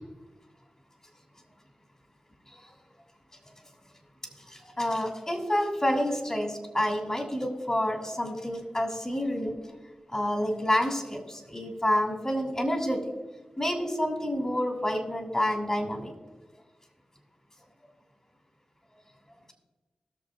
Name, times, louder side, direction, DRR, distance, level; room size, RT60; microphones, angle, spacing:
voice 1, 4.5-9.6 10.1-13.0 13.6-16.1, left 1 dB, 30° left, 2 dB, 2.5 m, -28 dB
19.5 x 6.8 x 2.5 m, 1.2 s
cardioid pair, 50°, 2 cm